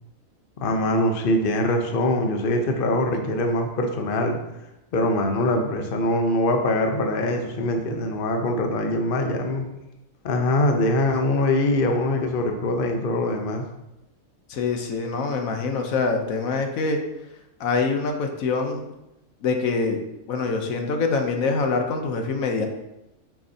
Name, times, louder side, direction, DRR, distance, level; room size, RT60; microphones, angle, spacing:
voice 1, 0.6-4.4 4.9-9.6 10.2-13.6, left 1 dB, 45° left, 4 dB, 0.9 m, -23 dB
voice 2, 14.5-17.0 17.6-18.8 19.4-20.0 20.3-22.7, left 4 dB, 75° left, 4 dB, 1.2 m, -24 dB
8.6 x 6.0 x 2.8 m, 0.92 s
omnidirectional pair, 1.5 m